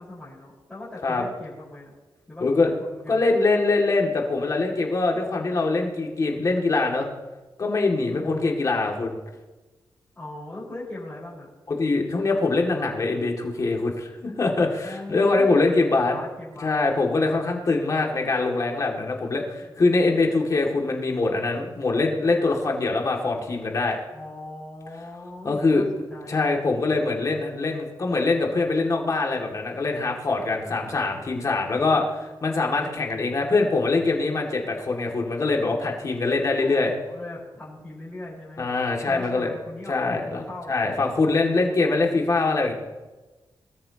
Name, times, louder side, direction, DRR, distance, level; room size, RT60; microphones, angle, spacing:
voice 1, 0.0-1.9 2.3-2.5 2.8-3.3 8.1-8.6 10.1-11.5 14.8-15.6 15.9-16.8 19.6-20.5 24.1-26.6 30.6-31.3 36.6-38.8 39.0-41.2, left 2 dB, 15° left, -8 dB, 4.9 m, -40 dB
voice 2, 2.4-2.7 3.1-7.1 7.6-9.2 11.7-16.2 16.6-24.0 25.4-25.8 26.3-36.9 38.6-39.5 39.9-42.7, left 3 dB, 40° left, 1 dB, 2.3 m, -23 dB
21.5 x 13.5 x 3.0 m, 1.2 s
wide cardioid pair, 135°, 8 cm